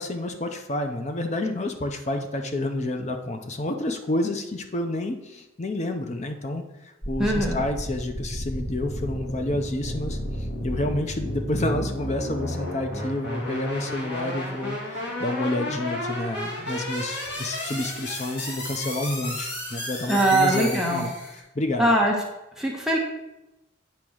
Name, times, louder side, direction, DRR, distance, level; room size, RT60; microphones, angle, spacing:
voice 1, 0.0-21.1 21.5-21.9, left 1 dB, 35° left, 6 dB, 0.7 m, -29 dB
sound 1, 7.0-21.4, left 1 dB, 60° left, 1.7 m, -32 dB
voice 2, 7.2-7.6 20.1-21.0 21.8-22.1 22.6-23.0, right 1 dB, 5° right, -2 dB, 0.9 m, -21 dB
8.7 x 3.0 x 6.2 m, 0.95 s
head